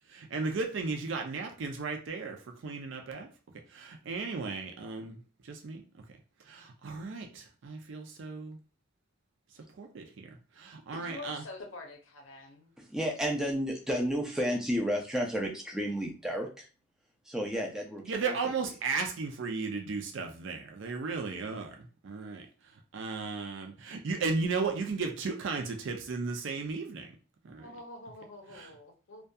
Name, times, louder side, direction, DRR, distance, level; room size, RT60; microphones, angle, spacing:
voice 1, 0.1-3.3 3.7-5.8 6.5-8.6 9.8-10.3 10.6-11.4 18.1-22.5 22.9-27.1 27.4-27.7 28.5-28.7, right 4 dB, 60° right, 3 dB, 0.4 m, -35 dB
voice 2, 10.9-12.7 27.6-29.3, left 2 dB, 70° left, 2 dB, 0.6 m, -46 dB
voice 3, 12.9-16.6 17.3-18.0, equal, 5° right, 0 dB, 0.4 m, -31 dB
2.6 x 2.2 x 2.2 m, 0.35 s
head